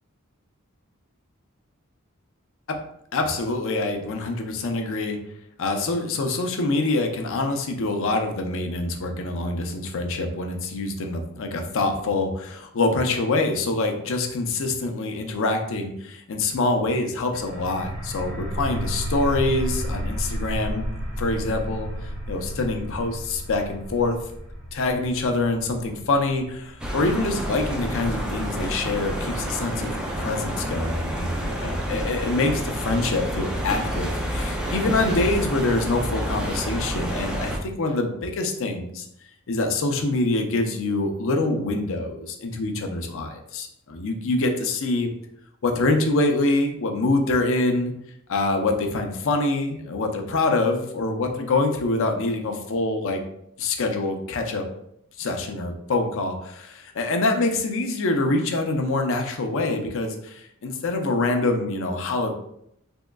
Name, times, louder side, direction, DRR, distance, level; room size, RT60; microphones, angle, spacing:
voice 1, 3.1-5.2 5.6-20.9 21.2-24.2 24.7-39.1 39.5-45.1 45.6-47.9 48.3-53.2 53.6-54.7 55.2-62.3, left 2 dB, 65° left, 4 dB, 0.5 m, -25 dB
sound 1, 17.3-28.8, equal, 55° right, 1.4 m, -33 dB
sound 2, 26.8-37.6, equal, 5° right, 0.4 m, -29 dB
3.5 x 3.0 x 2.2 m, 0.75 s
head